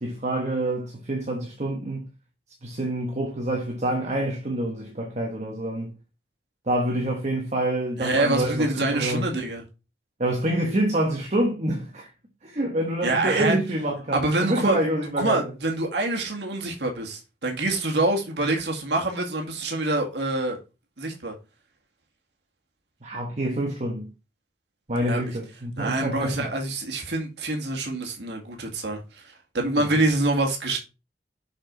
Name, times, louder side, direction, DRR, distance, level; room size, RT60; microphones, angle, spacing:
voice 1, 0.0-2.1 2.6-6.0 6.7-9.3 10.2-12.1 12.4-15.5 23.0-24.1 24.9-26.5 29.8-30.0, right 1 dB, 40° right, 1.2 m, -27 dB
voice 2, 8.0-9.6 13.0-13.6 14.1-14.8 15.2-20.6 21.0-21.3 25.0-25.2 25.8-29.0 29.5-30.8, right 2 dB, 75° right, 1.9 m, -25 dB
6.3 x 6.0 x 3.8 m
head